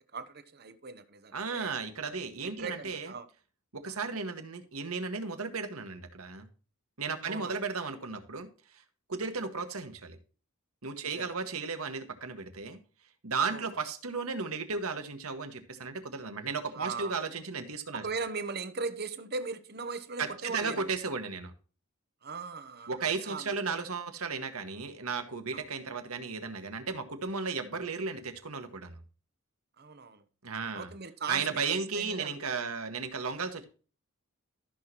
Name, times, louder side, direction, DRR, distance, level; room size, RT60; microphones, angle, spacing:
voice 1, 0.1-1.7 2.4-3.3 3.9-4.0 7.2-7.6 11.0-11.3 13.4-13.8 16.7-17.2 17.9-20.9 22.2-23.7 25.5-25.7 29.8-30.2 30.7-32.6, right 4 dB, 45° right, 0.9 m, -39 dB
voice 2, 1.3-3.1 3.7-6.5 7.0-8.5 9.1-10.2 10.8-12.8 13.2-18.0 20.2-21.5 22.9-29.0 30.4-30.9 31.3-33.6, right 4 dB, 90° right, 1.7 m, -35 dB
14.0 x 6.3 x 3.0 m
head